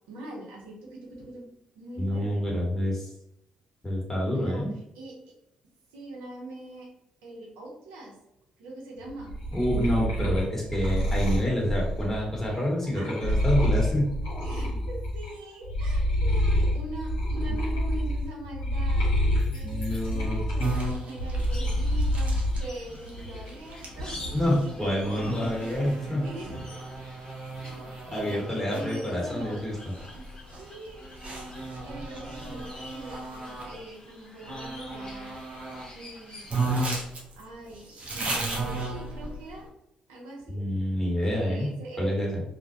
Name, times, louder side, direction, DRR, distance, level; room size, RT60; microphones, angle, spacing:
voice 1, 0.1-2.5 4.3-4.6 4.9-5.1 5.9-6.9 7.2-8.1 8.6-9.3 12.9-13.4 14.4-19.1 19.5-25.6 25.8-26.8 28.1-29.7 30.1-30.3 30.6-35.4 35.9-37.0 37.3-39.7 40.1-40.6 41.2-42.2, right 1 dB, 85° right, -2 dB, 0.6 m, -42 dB
voice 2, 2.0-3.1 3.8-4.7 9.5-14.1 14.5-14.8 19.6-20.4 24.3-26.2 27.6-27.8 28.1-29.7 40.5-42.4, equal, 15° left, -3 dB, 1.3 m, -28 dB
sound 1, 9.1-15.3 15.6-22.6 23.0-23.7, equal, 80° left, 1.1 m, -27 dB
sound 2, 20.6-33.8 34.4-35.9 36.2-36.3 36.5-39.6, right 2 dB, 50° right, 0.7 m, -35 dB
sound 3, 21.4-37.0, left 1 dB, 30° left, 0.8 m, -48 dB
2.4 x 2.1 x 2.7 m, 0.81 s
hypercardioid pair, 45°, 3 cm